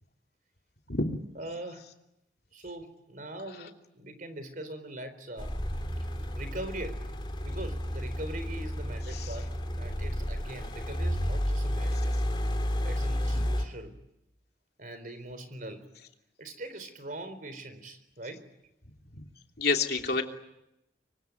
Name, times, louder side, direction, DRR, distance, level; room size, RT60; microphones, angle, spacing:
voice 1, 1.4-1.9 2.5-5.5 6.4-7.1 7.4-9.5 9.8-12.2 12.8-13.9 14.8-15.9 16.4-18.5, right 1 dB, 50° right, 11 dB, 4.2 m, -41 dB
sound 1, 5.4-13.7, equal, 30° left, 3.4 m, -31 dB
voice 2, 19.6-20.2, left 3 dB, 60° left, 3 dB, 3.0 m, -28 dB
25.0 x 25.0 x 9.4 m, 0.86 s
head